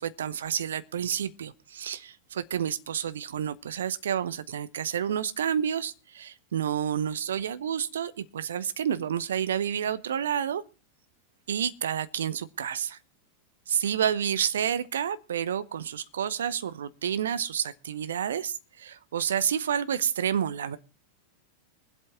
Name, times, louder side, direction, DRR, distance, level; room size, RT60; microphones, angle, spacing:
voice 1, 0.0-10.6 11.5-13.0 13.7-20.8, right 9 dB, 65° right, 0.8 m, -29 dB
22.0 x 8.1 x 4.5 m
figure-of-eight pair, 90°, 0 cm